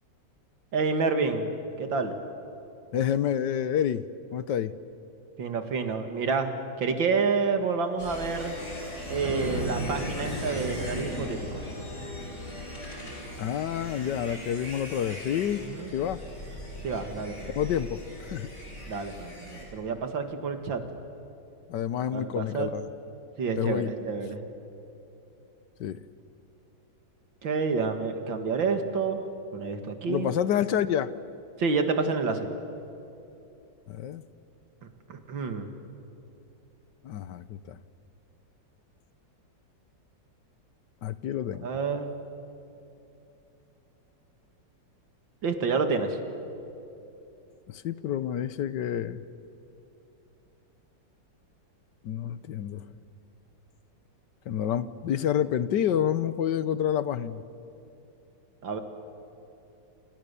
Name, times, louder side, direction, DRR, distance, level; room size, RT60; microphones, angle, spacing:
voice 1, 0.7-1.5 1.8-2.1 5.4-6.5 6.8-8.5 9.1-11.6 15.7-15.9 16.8-17.5 18.9-20.8 22.1-22.7 23.4-24.4 27.4-29.2 29.5-30.3 31.6-32.5 35.1-35.7 41.6-42.1 45.4-46.2 58.6-58.8, right 4 dB, 85° right, 7 dB, 2.6 m, -28 dB
voice 2, 2.9-4.1 4.3-4.7 13.4-15.6 15.9-16.2 17.5-18.5 21.7-22.9 23.6-23.9 25.8-26.0 30.1-31.1 33.9-34.2 37.0-37.8 41.0-41.7 47.7-49.2 52.0-52.8 54.5-57.4, left 9 dB, 70° left, 15 dB, 1.4 m, -28 dB
sound 1, 8.0-19.6, left 1 dB, 35° left, 6.3 m, -37 dB
28.5 x 28.0 x 6.9 m, 2.9 s
omnidirectional pair, 2.0 m